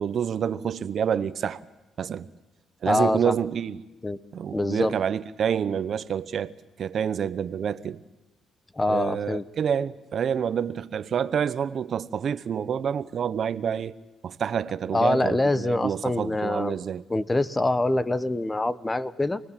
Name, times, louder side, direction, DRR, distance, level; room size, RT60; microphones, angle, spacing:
voice 1, 0.0-1.6 2.0-2.3 2.8-3.8 4.3-6.5 6.8-8.0 8.9-13.9 14.2-17.0, right 8 dB, 55° right, 0.9 m, -28 dB
voice 2, 2.8-3.3 4.0-4.2 4.5-4.9 8.7-9.4 14.9-16.8 17.1-19.4, left 2 dB, 15° left, 1.1 m, -25 dB
28.5 x 20.0 x 7.5 m
cardioid pair, 90°, 0 cm